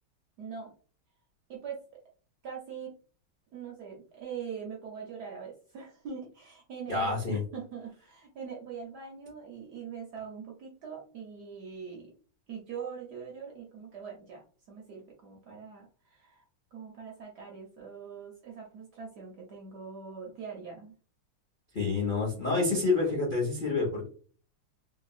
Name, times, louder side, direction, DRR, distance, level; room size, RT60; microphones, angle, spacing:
voice 1, 0.4-0.7 1.5-1.8 2.4-2.9 3.5-12.1 12.5-16.4 16.7-20.9, right 6 dB, 65° right, -2 dB, 1.1 m, -42 dB
voice 2, 6.9-7.4 21.7-24.1, left 3 dB, 50° left, -3 dB, 0.6 m, -28 dB
3.2 x 2.9 x 2.3 m, 0.41 s
omnidirectional pair, 2.4 m